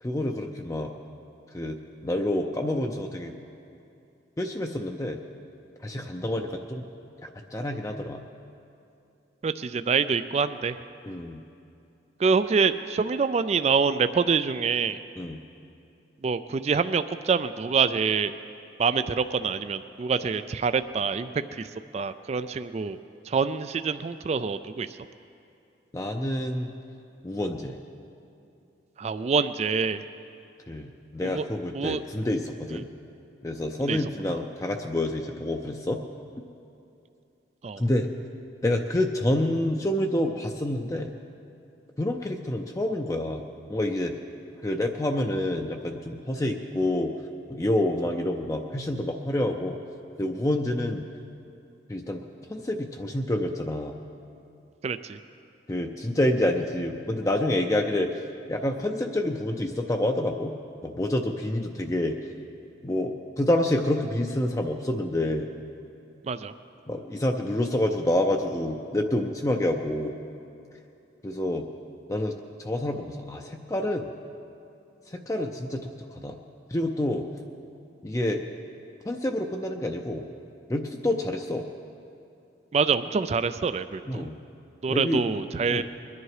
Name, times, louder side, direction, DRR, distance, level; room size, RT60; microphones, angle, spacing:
voice 1, 0.0-0.9 1.5-1.8 2.0-3.3 4.4-5.2 5.8-6.9 7.2-8.2 11.0-11.4 15.2-15.4 25.9-26.7 27.2-27.8 30.7-32.9 33.4-36.0 37.8-38.1 38.6-41.1 42.0-43.4 43.7-44.1 44.6-47.1 47.5-49.8 50.2-51.0 51.9-54.0 55.7-58.2 58.5-60.5 60.8-62.2 62.8-65.5 66.9-70.2 71.2-71.7 72.1-74.1 75.1-75.9 76.1-76.4 76.7-77.2 78.0-78.4 79.1-80.3 80.7-81.7 84.1-84.4 84.9-85.2 85.7-85.8, left 1 dB, 20° left, 3 dB, 0.5 m, -28 dB
voice 2, 9.4-10.8 12.2-15.0 16.2-18.3 18.8-21.3 21.6-21.7 21.9-23.0 23.3-24.9 29.0-30.0 31.2-31.4 31.7-32.0 33.8-34.0 37.6-37.8 54.8-55.2 66.3-66.5 82.7-84.3 84.8-85.8, right 5 dB, 35° right, 12 dB, 0.3 m, -26 dB
21.5 x 10.5 x 4.8 m, 2.6 s
head